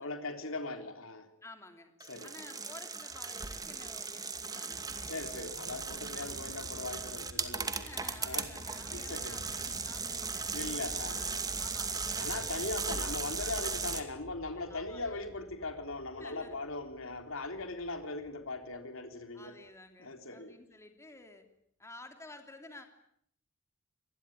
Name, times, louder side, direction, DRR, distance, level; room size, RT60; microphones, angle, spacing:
voice 1, 0.0-1.3 2.1-2.3 5.1-7.9 8.2-8.5 8.9-9.3 10.5-11.2 11.5-11.6 12.2-19.5 20.0-20.5, left 2 dB, 80° left, 6 dB, 3.6 m, -40 dB
voice 2, 1.4-1.9 2.2-4.8 6.2-6.4 7.7-10.5 10.9-13.4 14.7-15.2 16.2-16.6 19.3-21.5 21.8-22.8, left 2 dB, 15° left, 5 dB, 3.1 m, -53 dB
sound 1, 2.0-14.0, right 4 dB, 20° right, 2.4 m, -37 dB
sound 2, 6.2-19.1, equal, 70° right, 5.0 m, -52 dB
26.5 x 21.0 x 9.9 m, 0.72 s
head